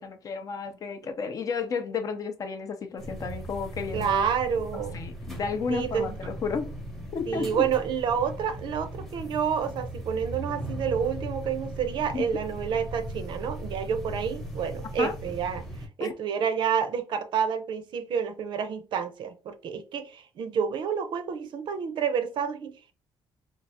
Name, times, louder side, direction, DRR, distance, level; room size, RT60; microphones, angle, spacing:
voice 1, 0.0-4.3 4.9-6.7 7.1-7.7 12.1-12.2 15.0-15.1 16.0-16.1, left 5 dB, 35° left, 0.5 m, -32 dB
sound 1, 3.0-15.9, right 1 dB, ahead, 0.8 m, -38 dB
voice 2, 3.9-5.0 5.7-6.2 7.3-15.7 16.0-22.8, right 7 dB, 55° right, 0.5 m, -29 dB
4.6 x 2.3 x 2.7 m
cardioid pair, 165°, 10 cm